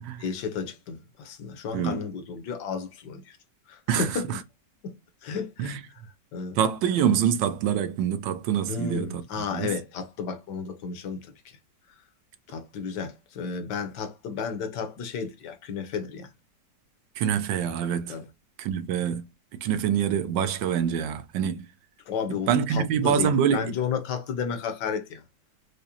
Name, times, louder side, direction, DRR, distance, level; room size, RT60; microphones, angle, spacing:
voice 1, 0.2-3.4 3.7-4.2 4.8-4.9 5.2-5.8 6.3-6.6 8.7-11.3 12.5-16.3 18.1-18.3 22.1-25.2, left 6 dB, 70° left, 1.3 m, -32 dB
voice 2, 3.9-4.4 5.6-5.8 6.6-9.7 17.2-18.2 18.6-19.2 19.6-21.7 22.5-23.7, right 8 dB, 85° right, 1.3 m, -25 dB
4.9 x 2.0 x 2.8 m
omnidirectional pair, 1.9 m